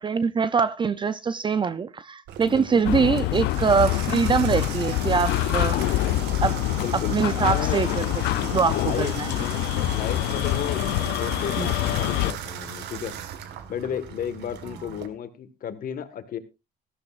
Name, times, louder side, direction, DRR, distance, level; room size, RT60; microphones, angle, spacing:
voice 1, 0.0-5.8 6.4-6.6 6.9-8.1 8.4-9.3 11.6-11.7, right 5 dB, 30° right, 0.6 m, -23 dB
Water tap faucet / Bathtub (filling or washing), 2.3-15.1, right 9 dB, 80° right, 1.7 m, -37 dB
voice 2, 2.4-3.0 6.7-7.8 8.6-13.1 13.7-16.4, left 9 dB, 55° left, 1.7 m, -33 dB
sound 1, 2.8-12.3, left 16 dB, 85° left, 0.6 m, -25 dB
16.5 x 14.0 x 2.5 m
cardioid pair, 110°, 17 cm